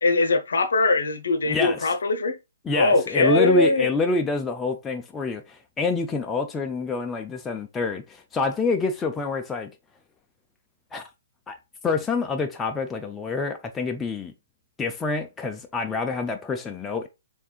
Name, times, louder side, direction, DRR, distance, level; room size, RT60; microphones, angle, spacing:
voice 1, 0.0-2.4 2.7-3.9, left 2 dB, 65° left, 0.6 m, -21 dB
voice 2, 1.5-1.9 2.6-9.7 10.9-11.0 11.5-11.6 11.8-14.3 14.8-17.1, left 3 dB, 10° left, 0.3 m, -27 dB
3.4 x 3.4 x 2.3 m
figure-of-eight pair, 125°, 0 cm